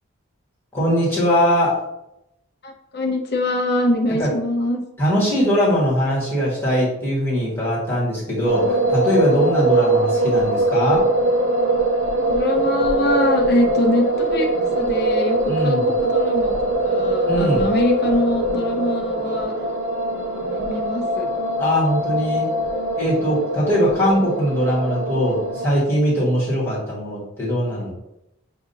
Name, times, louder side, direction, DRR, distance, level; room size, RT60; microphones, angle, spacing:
voice 1, 0.7-1.8 4.2-4.3 5.0-11.1 15.5-15.8 17.2-17.7 21.6-22.4 23.0-27.9, equal, 10° left, -9 dB, 1.5 m, -21 dB
voice 2, 2.6-4.8 9.7-10.0 12.3-14.5 14.7-16.5 16.8-19.5 20.5-21.3, left 1 dB, 50° left, 3 dB, 0.7 m, -23 dB
sound 1, 8.4-25.7, right 1 dB, 75° right, 0.7 m, -22 dB
7.0 x 2.6 x 2.7 m, 0.87 s
head